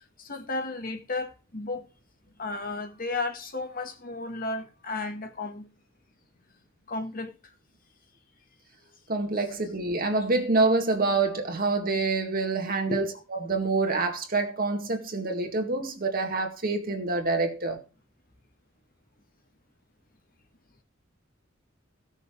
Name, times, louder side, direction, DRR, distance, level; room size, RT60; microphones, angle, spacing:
voice 1, 0.0-1.8 2.4-5.7 6.9-7.5 12.9-13.1, left 3 dB, 45° left, 1.8 m, -34 dB
voice 2, 9.1-17.8, right 3 dB, 45° right, 2.0 m, -26 dB
16.0 x 6.5 x 5.0 m
head